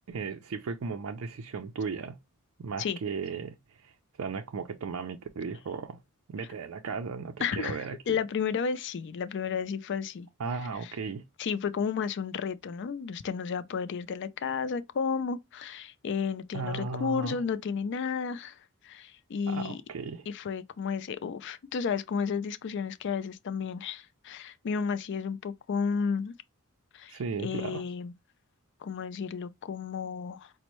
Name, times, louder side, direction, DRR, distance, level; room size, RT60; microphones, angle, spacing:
voice 1, 0.0-2.2 2.6-6.0 6.3-8.2 10.4-11.2 16.5-17.4 19.5-20.3 27.1-27.8, right 5 dB, 65° right, 0.4 m, -36 dB
voice 2, 7.4-10.3 10.8-10.9 11.4-18.6 18.8-19.8 20.3-26.3 26.9-28.1 28.8-30.5, left 6 dB, 55° left, 0.4 m, -32 dB
5.2 x 2.1 x 2.9 m
head